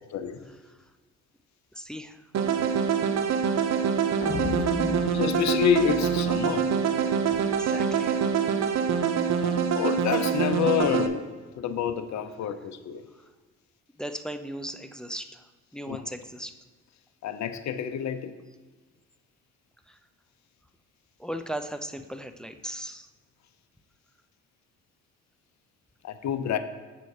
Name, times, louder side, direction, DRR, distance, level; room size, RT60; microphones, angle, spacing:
voice 1, 1.7-2.3 2.6-2.7 7.0-8.2 14.0-15.5 15.7-16.5 19.9-20.0 21.2-23.1, equal, ahead, 8 dB, 0.5 m, -38 dB
sound 1, 2.3-11.1, right 6 dB, 60° right, 0.8 m, -25 dB
sound 2, 4.2-7.3, left 3 dB, 35° left, 1.1 m, -35 dB
voice 2, 5.1-6.7 9.4-11.3 11.6-13.0 15.9-16.0 17.2-18.3 26.0-26.6, left 8 dB, 65° left, 9 dB, 0.7 m, -28 dB
7.7 x 4.2 x 6.5 m, 1.4 s
cardioid pair, 90°, 30 cm